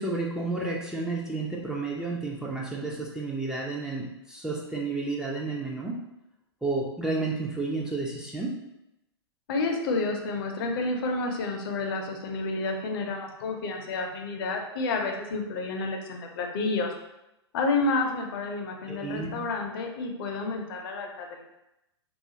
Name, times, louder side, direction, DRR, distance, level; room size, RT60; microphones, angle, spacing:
voice 1, 0.0-6.0 6.6-8.6 18.9-19.4, right 3 dB, 5° right, -4 dB, 0.3 m, -31 dB
voice 2, 9.5-16.9 17.5-21.5, left 3 dB, 55° left, 3 dB, 0.5 m, -30 dB
2.4 x 2.4 x 2.7 m, 0.89 s
hypercardioid pair, 105°, 14 cm